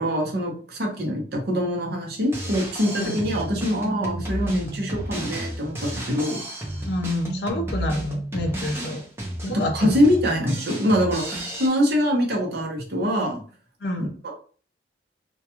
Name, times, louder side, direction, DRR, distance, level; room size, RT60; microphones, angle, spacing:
voice 1, 0.0-6.4 9.4-13.4 14.2-14.3, equal, 55° right, 0 dB, 0.7 m, -24 dB
Drum kit, 2.2-11.7, right 1 dB, 15° right, 0.5 m, -32 dB
voice 2, 6.9-9.0 9.4-9.9 13.8-14.1, left 1 dB, 60° left, 4 dB, 0.4 m, -28 dB
2.3 x 2.2 x 2.8 m, 0.42 s
head